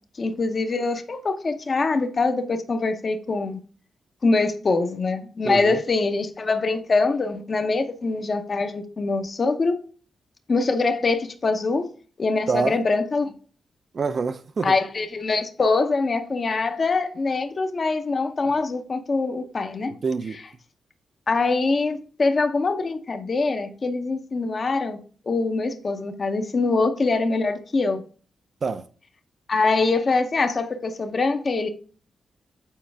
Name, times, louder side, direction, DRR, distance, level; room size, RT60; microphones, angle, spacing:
voice 1, 0.2-3.6 4.2-9.8 10.5-11.9 12.2-13.3 14.6-19.9 21.3-25.0 25.3-28.0 29.5-31.7, left 3 dB, 45° left, 0.8 m, -23 dB
voice 2, 5.4-5.8 12.5-12.8 13.9-14.7 20.0-20.4 28.6-28.9, right 5 dB, 50° right, 0.5 m, -26 dB
7.4 x 4.5 x 3.4 m
cardioid pair, 75°, 0 cm